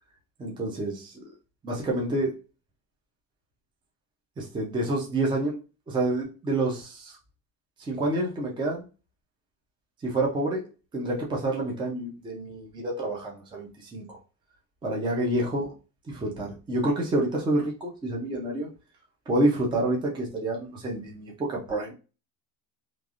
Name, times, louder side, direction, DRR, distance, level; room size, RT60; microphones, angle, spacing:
voice 1, 0.4-1.1 1.6-2.3 4.4-5.6 5.9-7.2 7.9-8.8 10.0-10.6 10.9-14.2 14.8-15.7 16.1-18.7 19.3-21.9, right 1 dB, 15° right, -2 dB, 0.6 m, -28 dB
3.1 x 2.4 x 2.5 m, 0.32 s
cardioid pair, 155°, 35 cm